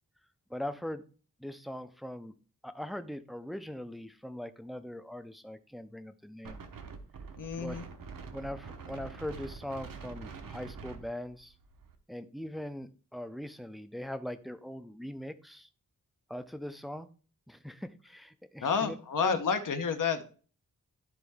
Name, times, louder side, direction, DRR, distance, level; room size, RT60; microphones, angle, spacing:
voice 1, 0.5-1.0 1.4-2.3 2.6-6.6 7.6-7.8 8.3-11.5 12.1-15.7 16.3-17.1 17.5-19.0 19.2-19.4, left 1 dB, ahead, 10 dB, 0.3 m, -41 dB
Wind, 6.4-11.9, right 5 dB, 85° right, 1.0 m, -45 dB
voice 2, 7.4-7.9 18.6-20.2, left 6 dB, 70° left, 7 dB, 0.9 m, -30 dB
12.0 x 4.2 x 3.5 m, 0.39 s
wide cardioid pair, 180°, 32 cm